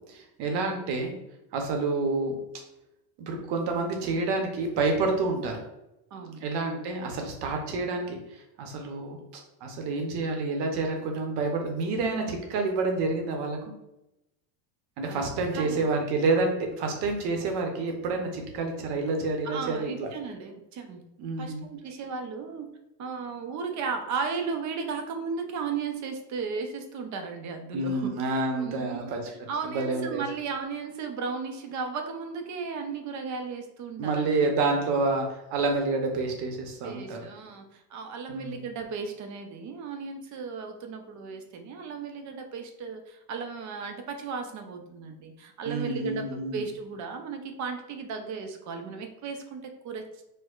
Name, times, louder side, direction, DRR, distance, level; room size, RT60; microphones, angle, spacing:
voice 1, 0.1-1.1 1.5-2.3 3.2-5.5 6.4-13.6 15.0-20.1 21.2-21.7 27.7-29.2 29.6-30.2 34.0-37.2 38.3-38.6 45.6-46.7, right 3 dB, 60° right, 3 dB, 0.8 m, -28 dB
voice 2, 6.1-6.5 15.1-15.2 15.5-15.9 19.4-21.0 21.4-22.7 23.0-34.5 34.8-35.1 36.8-50.1, right 5 dB, 40° right, 5 dB, 0.5 m, -35 dB
4.4 x 2.1 x 2.4 m, 0.89 s
cardioid pair, 135°, 44 cm